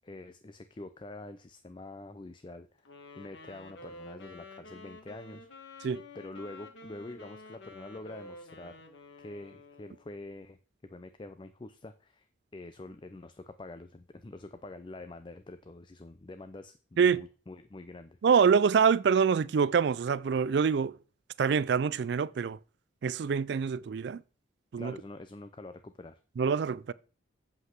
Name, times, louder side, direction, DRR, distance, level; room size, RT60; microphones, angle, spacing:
voice 1, 0.0-2.9 3.2-5.7 6.1-8.8 9.2-10.6 10.8-12.3 12.5-18.2 24.8-26.2, left 2 dB, 25° left, 0.4 m, -46 dB
Wind instrument woodwind instrument, 2.8-10.1, left 2 dB, 65° left, 1.5 m, -50 dB
voice 2, 18.2-21.0 21.4-22.6 23.0-24.2 24.7-24.9 26.4-26.9, right 6 dB, 60° right, 0.3 m, -25 dB
7.8 x 5.6 x 5.9 m
head